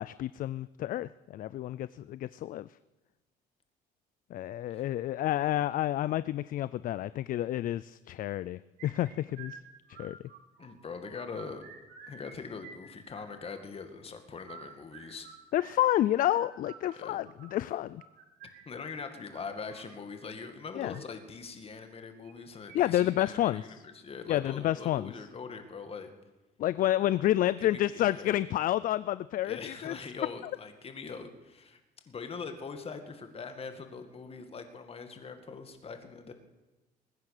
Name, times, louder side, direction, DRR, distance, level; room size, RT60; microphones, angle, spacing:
voice 1, 0.0-2.7 4.3-9.6 9.9-10.2 15.5-18.0 20.7-21.0 22.7-23.8 24.3-25.1 26.6-30.0, left 13 dB, 55° left, 17 dB, 0.4 m, -29 dB
sound 1, 8.8-10.7 11.0-12.3 12.6-13.6 14.3-19.9 20.7-21.0 22.2-23.1 23.3-23.4 23.9-24.0 24.6-24.9, right 6 dB, 80° right, 3.9 m, -51 dB
voice 2, 10.6-11.6 12.1-15.3 16.9-17.2 18.7-26.1 27.4-28.4 29.4-31.8 32.1-36.3, left 5 dB, 35° left, 7 dB, 2.2 m, -42 dB
21.0 x 9.7 x 6.7 m, 1.1 s
cardioid pair, 110°, 17 cm